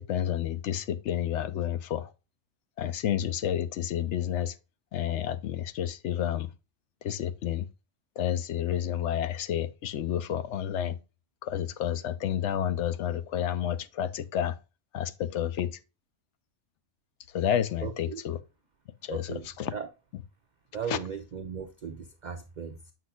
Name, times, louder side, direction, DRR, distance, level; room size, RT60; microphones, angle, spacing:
voice 1, 0.1-2.1 2.8-4.5 4.9-6.5 7.0-7.7 8.2-11.0 11.4-14.6 14.9-15.7 17.3-18.4 19.0-19.7 20.9-21.0, left 10 dB, 75° left, 0.9 m, -30 dB
voice 2, 17.8-18.2 19.1-19.9 20.7-22.9, right 7 dB, 50° right, 0.6 m, -37 dB
7.5 x 5.9 x 2.3 m
omnidirectional pair, 1.2 m